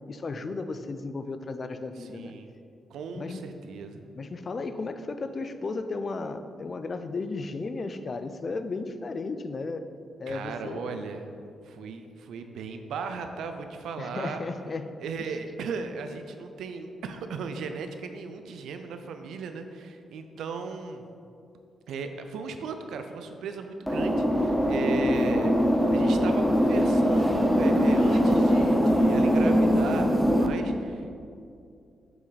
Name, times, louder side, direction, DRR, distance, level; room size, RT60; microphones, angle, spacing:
voice 1, 0.1-2.3 3.1-3.4 4.1-9.9 10.2-11.0 14.0-15.0 15.3-15.4, left 3 dB, 40° left, 10 dB, 0.4 m, -34 dB
voice 2, 2.0-2.5 2.9-4.0 10.3-11.3 11.6-14.4 15.0-21.1 21.9-25.5 25.9-31.1, right 5 dB, 90° right, 7 dB, 0.6 m, -36 dB
sound 1, 23.9-30.5, equal, ahead, 0.6 m, -22 dB
7.0 x 6.1 x 4.1 m, 2.4 s
cardioid pair, 105°, 0 cm